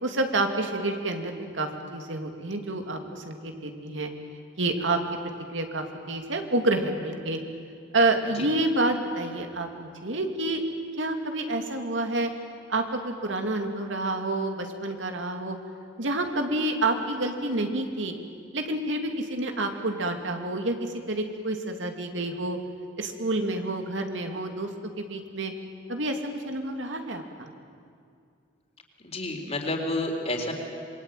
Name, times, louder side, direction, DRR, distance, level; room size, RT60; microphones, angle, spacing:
voice 1, 0.0-4.1 4.6-5.0 5.5-7.4 7.9-10.6 11.0-12.3 12.7-15.6 16.0-18.1 18.5-22.6 23.0-24.7 25.0-25.5 25.9-26.2 26.4-27.5, right 2 dB, 85° right, 4 dB, 2.6 m, -28 dB
voice 2, 29.0-30.5, left 2 dB, 35° left, 2 dB, 3.8 m, -30 dB
26.5 x 23.0 x 9.2 m, 2.3 s
head